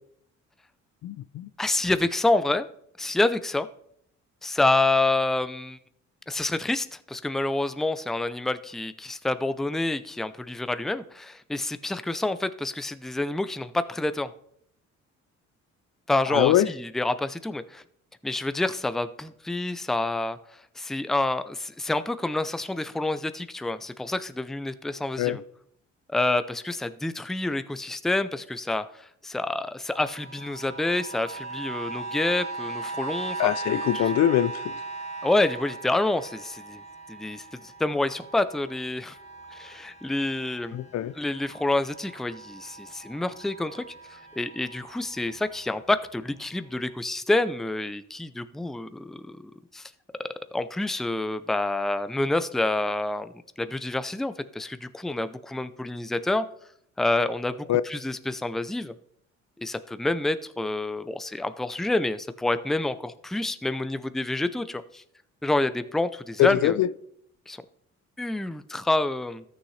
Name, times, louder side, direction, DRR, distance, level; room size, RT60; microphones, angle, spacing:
voice 1, 1.0-1.5 16.3-16.7 25.2-25.4 33.4-34.8 40.7-41.1 57.7-57.8 66.4-66.9, left 12 dB, 65° left, 17 dB, 0.5 m, -23 dB
voice 2, 1.6-2.7 3.0-3.7 4.4-5.8 6.3-14.3 16.1-17.8 18.2-20.4 20.8-25.4 26.1-33.5 33.9-34.0 35.2-36.8 37.1-39.2 39.5-40.8 41.2-43.8 44.1-49.4 49.7-49.9 50.2-53.3 53.6-56.5 57.0-58.9 59.6-65.0 65.4-66.8 67.5-67.6 68.2-69.4, left 2 dB, ahead, 12 dB, 0.4 m, -28 dB
sound 1, 29.9-40.9 41.3-45.9 46.5-46.6, right 3 dB, 25° left, 1.2 m, -39 dB
13.5 x 6.4 x 3.2 m, 0.69 s
cardioid pair, 90°, 30 cm